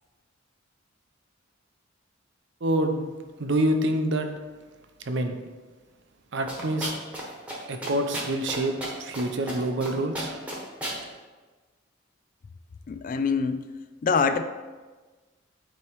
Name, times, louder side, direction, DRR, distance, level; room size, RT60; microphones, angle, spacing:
voice 1, 2.6-3.1 3.4-4.3 5.0-5.4 6.3-6.9 7.7-10.4, right 1 dB, 60° right, 6 dB, 0.6 m, -26 dB
sound 1, 6.5-7.2 7.5-7.6 7.8-9.2 9.5-9.9 10.1-11.0, right 1 dB, 5° right, 1.2 m, -33 dB
voice 2, 12.9-13.7 14.0-14.4, left 5 dB, 40° left, 11 dB, 0.3 m, -24 dB
8.8 x 3.1 x 4.6 m, 1.3 s
head